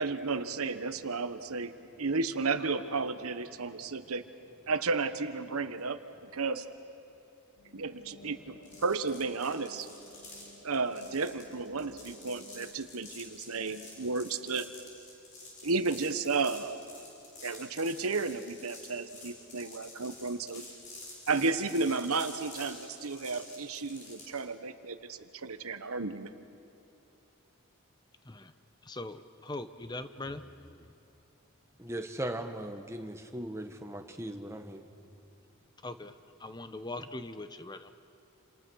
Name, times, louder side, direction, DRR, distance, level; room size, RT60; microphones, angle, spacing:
voice 1, 0.0-4.2 4.7-6.6 7.7-8.5 8.8-9.9 10.6-14.7 15.6-16.8 17.4-20.6 21.3-26.3, right 4 dB, 75° right, 11 dB, 1.1 m, -33 dB
sound 1, 7.6-12.8, left 1 dB, 80° left, 2.6 m, -54 dB
sound 2, 8.6-24.4, left 2 dB, 35° left, 5.6 m, -49 dB
voice 2, 28.8-30.5 35.8-36.1 36.4-37.9, left 2 dB, 20° left, 10 dB, 0.8 m, -41 dB
voice 3, 31.8-34.9, right 1 dB, 10° right, 6 dB, 1.2 m, -38 dB
29.0 x 28.0 x 6.3 m, 2.8 s
head